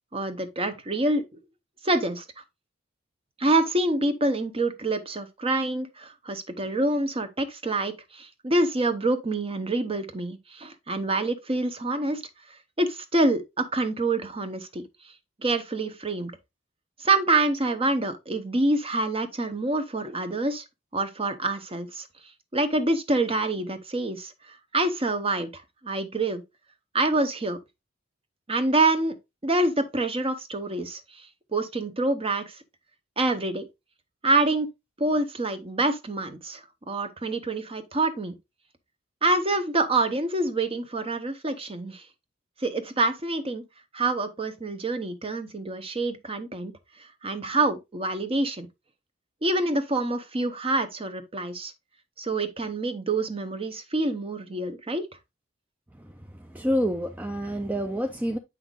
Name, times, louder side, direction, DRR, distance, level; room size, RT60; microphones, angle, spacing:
voice 1, 0.1-1.2 1.8-2.2 3.4-12.2 12.8-14.9 15.4-16.3 17.0-20.6 20.9-22.1 22.5-24.3 24.7-26.4 26.9-27.6 28.5-29.2 29.4-31.3 31.5-32.6 33.2-33.7 34.2-34.7 35.0-38.3 39.2-42.0 42.6-43.6 43.9-46.7 47.2-48.7 49.4-51.7 52.2-55.1, right 2 dB, 30° right, 0.9 m, -26 dB
voice 2, 55.9-58.4, equal, 10° right, 0.5 m, -28 dB
8.1 x 5.7 x 2.4 m
head